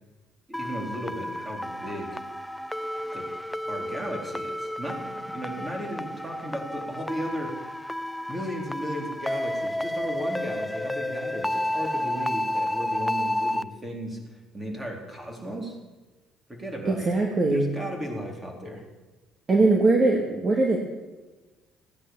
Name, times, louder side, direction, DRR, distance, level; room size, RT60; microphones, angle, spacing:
sound 1, 0.5-13.6, left 1 dB, 5° left, 0.5 m, -31 dB
voice 1, 0.5-2.2 3.1-3.3 3.7-7.6 8.3-15.8 16.5-17.1 17.5-18.8, equal, 15° right, 1 dB, 4.1 m, -35 dB
voice 2, 16.9-17.7 19.5-20.8, right 2 dB, 35° right, 2 dB, 2.1 m, -21 dB
17.0 x 9.9 x 7.3 m, 1.2 s
cardioid pair, 100°, 0 cm